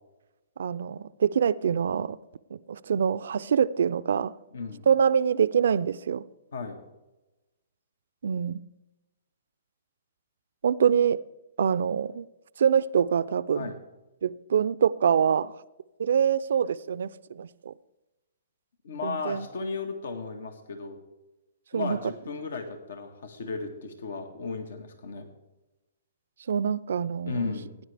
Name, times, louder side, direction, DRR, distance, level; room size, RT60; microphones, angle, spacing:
voice 1, 0.6-2.2 2.5-4.3 4.9-6.2 8.2-8.6 10.6-11.2 11.6-12.3 12.6-13.7 14.2-15.6 16.0-17.7 19.0-19.5 21.7-22.0 26.5-27.5, right 7 dB, 70° right, 16 dB, 0.4 m, -25 dB
voice 2, 4.5-4.9 6.5-6.8 13.5-13.8 18.8-21.0 21.7-25.3 27.2-27.7, left 4 dB, 75° left, 7 dB, 1.6 m, -35 dB
16.5 x 9.7 x 3.4 m, 1.0 s
hypercardioid pair, 135°, 0 cm